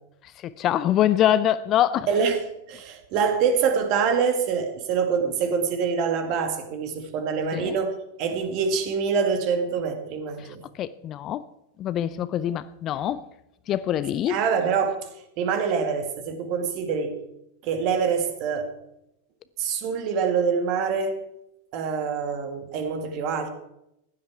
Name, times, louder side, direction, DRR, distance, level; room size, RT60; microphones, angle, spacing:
voice 1, 0.4-2.1 7.5-7.8 10.8-11.4 11.8-13.3 13.7-14.4, left 11 dB, 35° left, 0.5 m, -24 dB
voice 2, 2.1-7.9 8.2-10.6 14.2-15.0 15.4-17.2 17.6-18.7 19.6-21.2 21.7-23.5, right 6 dB, 40° right, 2.0 m, -25 dB
15.5 x 11.0 x 4.7 m
figure-of-eight pair, 90°, 0 cm